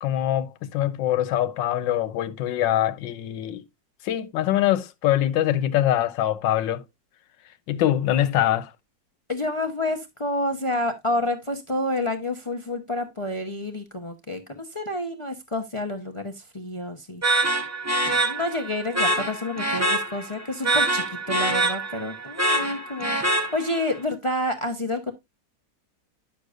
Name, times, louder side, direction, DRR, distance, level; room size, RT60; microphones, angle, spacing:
voice 1, 0.0-3.6 4.0-6.8 7.7-8.7, left 12 dB, 85° left, 1.5 m, -23 dB
voice 2, 9.3-17.6 18.0-25.1, left 1 dB, 35° left, 0.5 m, -29 dB
sound 1, 17.2-23.9, right 1 dB, 20° right, 0.4 m, -25 dB
10.5 x 6.4 x 2.5 m
omnidirectional pair, 2.0 m